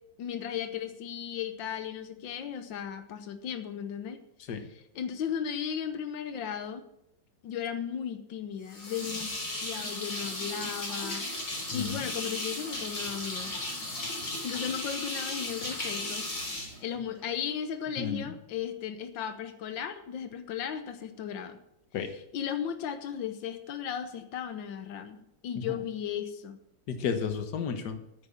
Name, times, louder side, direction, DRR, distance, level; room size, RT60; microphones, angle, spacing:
voice 1, 0.2-4.2 4.9-6.8 7.4-9.4 9.6-13.5 14.4-21.6 22.3-26.6, left 8 dB, 90° left, 9 dB, 1.7 m, -36 dB
sound 1, 8.7-17.5, left 1 dB, 45° left, 3.6 m, -36 dB
voice 2, 11.7-12.1 18.0-18.3 21.9-22.1 25.6-25.8 26.9-28.0, left 6 dB, 65° left, 8 dB, 1.8 m, -33 dB
9.4 x 9.2 x 7.2 m, 0.83 s
omnidirectional pair, 2.0 m